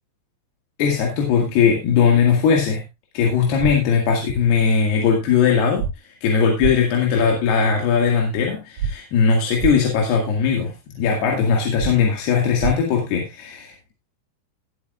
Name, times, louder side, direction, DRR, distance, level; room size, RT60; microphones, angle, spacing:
voice 1, 0.8-2.9 3.1-5.9 6.2-13.8, left 6 dB, 75° left, 0 dB, 4.0 m, -19 dB
sound 1, 3.6-3.7 5.8-5.9 6.6-6.7 8.8-8.9 9.6-9.7 11.8-11.9 12.6-12.7, right 7 dB, 55° right, 3.5 m, -23 dB
18.5 x 8.4 x 2.4 m, 0.23 s
omnidirectional pair, 4.7 m